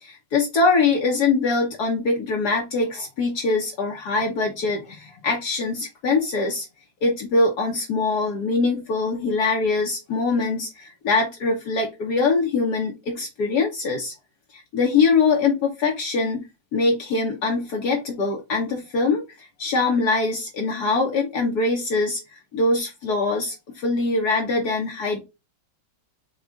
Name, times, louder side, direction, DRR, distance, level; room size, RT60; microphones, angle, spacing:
voice 1, 0.0-6.7 7.0-14.1 14.5-16.4 16.7-22.2 22.5-25.2, left 3 dB, 65° left, 0 dB, 1.4 m, -23 dB
6.3 x 2.4 x 3.4 m, 0.25 s
omnidirectional pair, 1.9 m